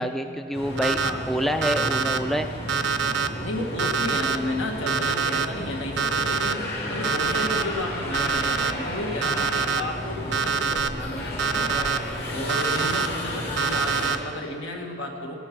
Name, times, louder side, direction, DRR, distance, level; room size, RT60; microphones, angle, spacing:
voice 1, 0.0-1.0 1.3-2.5, equal, ahead, 7 dB, 0.3 m, -26 dB
sound 1, 0.5-14.1, left 1 dB, 55° left, 3.0 m, -33 dB
Alarm, 0.8-1.1 1.6-2.2 2.7-3.3 3.8-4.4 4.9-5.4 6.0-6.5 7.0-7.6 8.1-8.7 9.2-9.8 10.3-10.9 11.4-12.0 12.5-13.1 13.6-14.2, right 5 dB, 65° right, 0.5 m, -25 dB
voice 2, 3.4-11.9 12.3-15.3, left 1 dB, 75° left, 2 dB, 1.8 m, -32 dB
16.5 x 11.0 x 6.0 m, 2.5 s
head